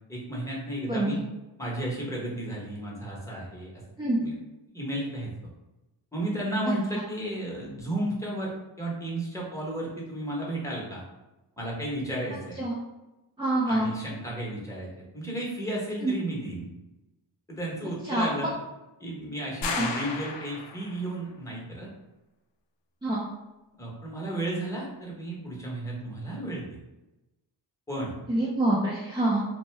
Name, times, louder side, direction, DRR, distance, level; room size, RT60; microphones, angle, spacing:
voice 1, 0.1-1.2 1.6-3.8 4.2-4.3 4.7-5.3 6.1-8.5 8.8-11.0 11.6-12.6 13.7-16.7 17.5-18.6 19.0-21.9 23.8-26.6 27.9-28.1, right 1 dB, 5° left, -4 dB, 0.9 m, -33 dB
voice 2, 0.8-1.2 4.0-4.2 12.6-12.7 13.4-13.9 16.0-16.1 18.0-18.5 19.7-19.9 23.0-23.3 28.3-29.4, right 1 dB, 10° right, -5 dB, 0.4 m, -26 dB
sound 1, 19.6-21.1, left 4 dB, 70° left, 0.5 m, -33 dB
2.6 x 2.2 x 3.3 m, 1.0 s
cardioid pair, 90°, 46 cm